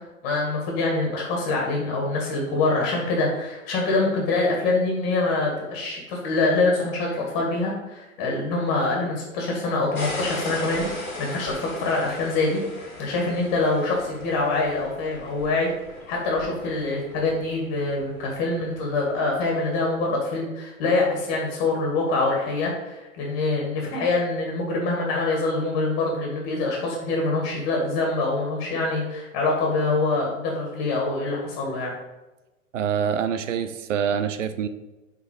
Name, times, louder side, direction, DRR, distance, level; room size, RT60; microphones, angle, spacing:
voice 1, 0.2-15.7 16.1-31.9, left 3 dB, 40° left, -1 dB, 2.0 m, -25 dB
sound 1, 10.0-19.6, left 2 dB, 90° left, 1.9 m, -38 dB
voice 2, 32.7-34.7, right 8 dB, 60° right, 12 dB, 0.7 m, -25 dB
5.9 x 5.1 x 4.8 m, 1.1 s
figure-of-eight pair, 105°, 42 cm